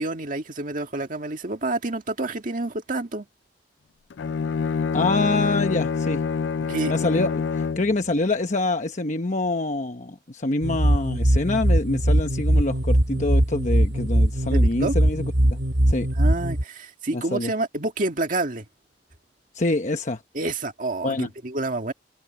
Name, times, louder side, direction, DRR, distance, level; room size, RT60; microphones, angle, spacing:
voice 1, 0.0-3.3 6.6-6.9 14.5-14.9 16.2-18.7 20.3-21.9, right 2 dB, 50° right, 1.9 m, -28 dB
Bowed string instrument, 4.1-8.0, left 5 dB, 85° left, 0.4 m, -26 dB
voice 2, 4.9-6.2 6.9-15.6 15.9-16.1 17.1-17.5 19.5-20.2 21.0-21.3, left 2 dB, 45° left, 1.0 m, -26 dB
sound 1, 10.6-16.6, right 1 dB, 75° right, 1.8 m, -21 dB
open air
head